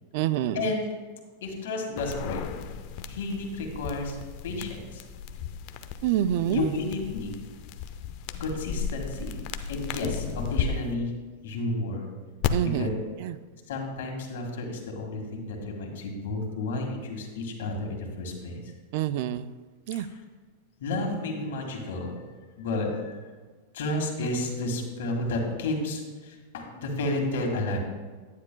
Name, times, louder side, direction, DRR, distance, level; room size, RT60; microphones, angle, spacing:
voice 1, 0.1-0.7 6.0-6.7 12.5-12.9 13.2-13.4 18.9-19.5 19.9-20.1, right 11 dB, 55° right, 14 dB, 0.3 m, -27 dB
voice 2, 1.4-2.4 3.1-4.2 4.4-5.0 6.5-7.4 8.4-9.4 9.7-11.1 11.4-12.1 12.6-12.9 13.7-18.7 19.9-20.1 20.8-22.2 22.6-23.2 23.7-27.8, left 2 dB, 75° left, 2 dB, 1.8 m, -31 dB
sound 1, 2.0-10.6 12.4-12.5, left 9 dB, 50° left, 0.5 m, -35 dB
10.0 x 9.7 x 2.2 m, 1.4 s
supercardioid pair, 140°, 0 cm